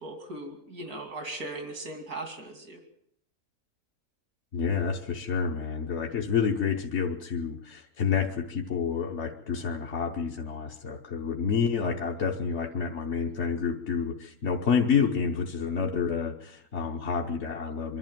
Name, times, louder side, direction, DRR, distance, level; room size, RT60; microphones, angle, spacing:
voice 1, 0.0-2.8, right 2 dB, 85° right, 5 dB, 3.1 m, -38 dB
voice 2, 4.5-18.0, left 6 dB, 55° left, 1 dB, 1.3 m, -29 dB
24.0 x 12.0 x 9.1 m, 0.71 s
omnidirectional pair, 1.5 m